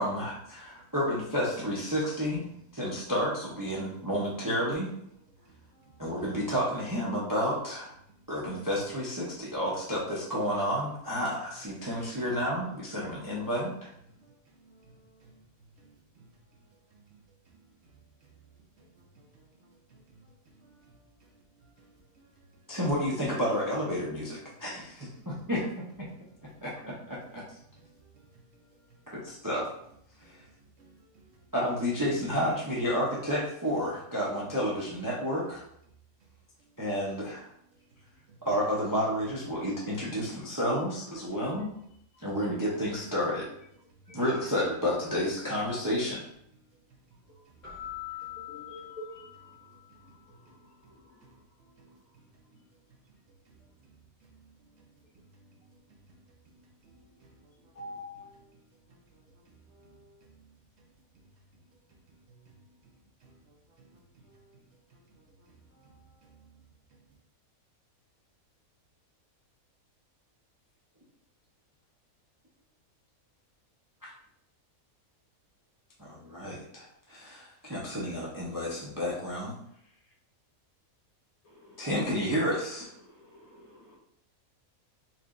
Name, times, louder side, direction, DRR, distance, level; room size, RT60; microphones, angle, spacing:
voice 1, 0.0-2.4 2.7-4.9 6.0-7.9 8.3-13.9 22.7-25.7 26.0-26.1 26.6-27.4 29.1-29.7 30.3-30.4 31.5-35.6 36.8-37.5 38.4-41.7 42.2-43.4 44.1-46.2 74.0-74.1 76.0-79.5 81.8-82.9, equal, 25° right, 0.4 m, -31 dB
voice 2, 5.2-6.3 8.1-8.2 9.2-9.3 9.8-9.9 13.0-13.3 14.1-22.8 24.5-25.3 26.1-26.7 27.2-29.2 30.2-31.5 36.6-36.8 37.7-38.0 38.3-38.4 43.9-44.0 46.5-49.0 49.5-61.3 61.7-62.9 63.2-66.6 66.9-67.0, right 3 dB, 60° right, 0.8 m, -61 dB
Keyboard (musical), 47.6-50.0, left 13 dB, 45° left, 1.8 m, -43 dB
voice 3, 48.5-49.1 57.7-58.2 81.4-82.2 83.0-84.0, left 2 dB, 80° left, 1.6 m, -44 dB
4.3 x 2.9 x 2.5 m
omnidirectional pair, 1.5 m